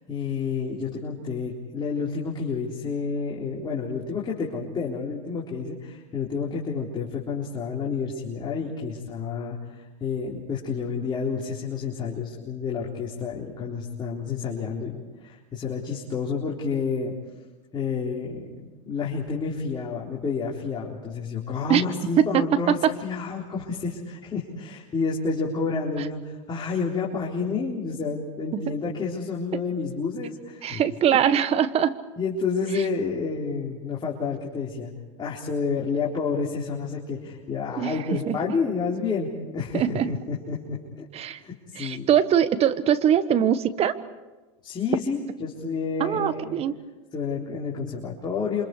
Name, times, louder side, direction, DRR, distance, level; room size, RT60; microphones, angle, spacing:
voice 1, 0.1-17.1 17.7-30.8 31.1-31.2 32.2-34.9 35.2-41.1 41.4-42.1 44.6-46.6 47.1-48.6, left 5 dB, 25° left, -4 dB, 3.9 m, -30 dB
voice 2, 22.2-22.9 28.5-28.6 30.6-31.9 32.7-32.8 37.8-38.0 38.3-38.4 39.7-40.1 41.1-41.4 41.7-43.9 46.0-46.7, right 9 dB, 40° right, 13 dB, 1.3 m, -22 dB
28.0 x 26.0 x 4.9 m, 1.2 s
hypercardioid pair, 95°, 17 cm